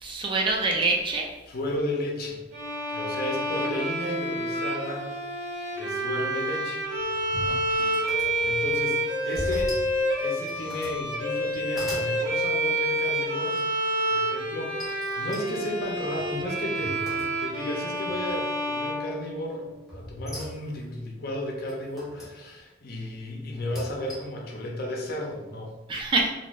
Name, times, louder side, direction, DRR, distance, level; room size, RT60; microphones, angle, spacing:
voice 1, 0.0-1.3 7.5-7.9 25.9-26.3, right 3 dB, 25° right, 1 dB, 0.4 m, -26 dB
voice 2, 1.5-2.4 2.9-5.0 5.4-6.8 8.2-9.0 9.2-9.8 10.2-13.6 14.1-25.7, left 1 dB, 55° left, -1 dB, 0.6 m, -33 dB
Bowed string instrument, 2.5-19.7, right 1 dB, 65° right, 0.8 m, -29 dB
sound 1, 6.9-8.8 9.3-10.0 10.4-11.0 11.5-12.1 13.5-14.0 14.8-17.7 18.1-18.6 19.9-20.9 21.7-22.4 23.5-24.4, equal, ahead, 0.8 m, -40 dB
2.6 x 2.5 x 3.0 m, 1.1 s
head